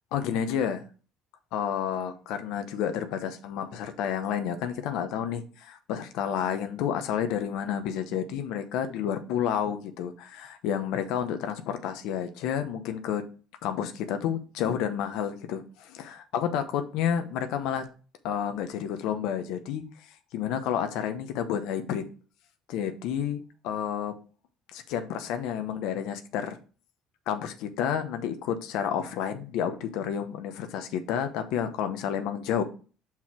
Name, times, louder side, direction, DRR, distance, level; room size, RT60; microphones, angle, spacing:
voice 1, 0.1-0.8 1.5-13.2 13.6-17.9 18.2-19.8 20.3-22.0 22.7-24.1 24.7-26.6 27.3-32.6, left 9 dB, 75° left, 8 dB, 0.8 m, -30 dB
5.7 x 4.5 x 4.5 m, 0.37 s
supercardioid pair, 80°, 0 cm